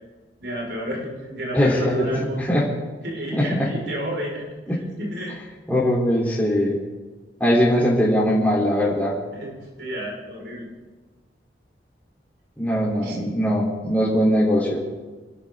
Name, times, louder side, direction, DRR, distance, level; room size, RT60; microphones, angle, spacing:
voice 1, 0.4-2.5 3.0-4.5 5.0-5.3 9.3-10.7 13.0-13.2, equal, 75° right, -3 dB, 5.6 m, -31 dB
voice 2, 1.5-2.1 2.4-2.7 3.3-3.6 5.7-6.8 7.4-9.1 12.6-14.8, equal, 10° left, -6 dB, 3.8 m, -20 dB
27.0 x 13.0 x 3.9 m, 1.3 s
head